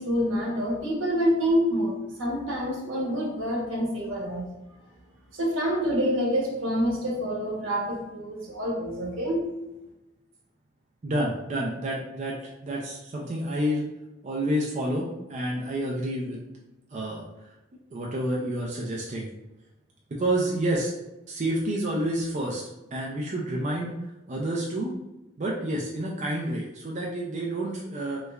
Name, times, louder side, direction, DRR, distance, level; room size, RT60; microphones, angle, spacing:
voice 1, 0.0-4.4 5.3-9.5, equal, 70° right, -3 dB, 1.0 m, -27 dB
voice 2, 11.0-12.4 12.6-13.9 14.2-16.4 16.9-17.2 17.9-19.3 20.2-20.9 21.3-22.6 22.9-23.9 24.3-24.9 25.4-28.2, right 1 dB, 35° right, -3 dB, 0.4 m, -29 dB
3.2 x 3.1 x 2.3 m, 0.98 s
head